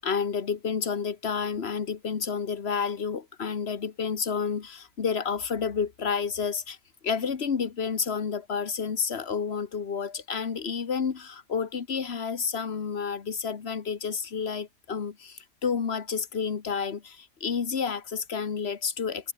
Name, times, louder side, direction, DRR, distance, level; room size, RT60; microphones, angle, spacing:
voice 1, 0.0-6.8 7.0-19.3, left 6 dB, 40° left, 1.4 m, -30 dB
omnidirectional pair, 1.8 m